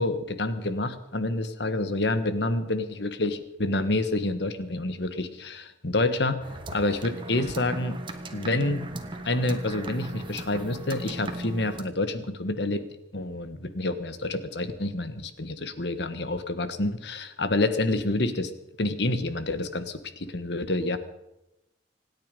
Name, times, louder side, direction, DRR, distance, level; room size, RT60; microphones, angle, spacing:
voice 1, 0.0-6.4 6.7-8.0 8.3-8.9 9.2-12.8 13.1-18.5 18.8-21.0, left 2 dB, 65° left, 10 dB, 1.4 m, -28 dB
sound 1, 6.4-11.8, right 1 dB, 25° right, 1.4 m, -38 dB
26.5 x 9.7 x 5.3 m, 0.92 s
head